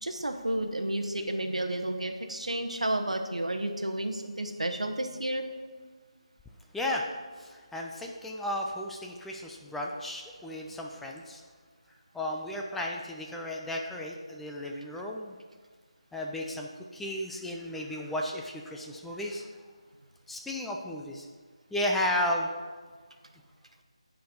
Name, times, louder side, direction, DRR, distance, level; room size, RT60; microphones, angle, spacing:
voice 1, 0.0-5.4, right 1 dB, 90° right, 5 dB, 0.9 m, -31 dB
voice 2, 6.7-7.1 7.4-11.4 12.1-15.4 16.1-19.5 20.3-21.3 21.7-22.5, left 1 dB, 5° left, -1 dB, 0.4 m, -34 dB
9.1 x 4.5 x 5.2 m, 1.5 s
figure-of-eight pair, 160°, 3 cm